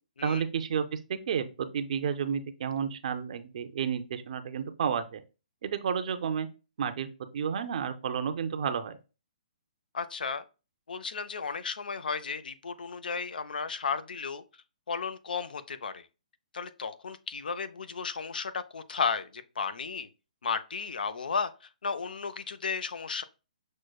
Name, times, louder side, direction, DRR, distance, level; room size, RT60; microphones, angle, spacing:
voice 1, 0.2-5.2 5.6-6.5 6.8-7.1 7.3-9.0, right 7 dB, 50° right, 0.5 m, -31 dB
voice 2, 9.9-10.4 10.9-14.4 14.9-16.1 16.5-20.1 20.4-21.5 21.8-23.2, left 5 dB, 85° left, 0.4 m, -34 dB
6.2 x 2.1 x 2.3 m
hypercardioid pair, 160°, 5 cm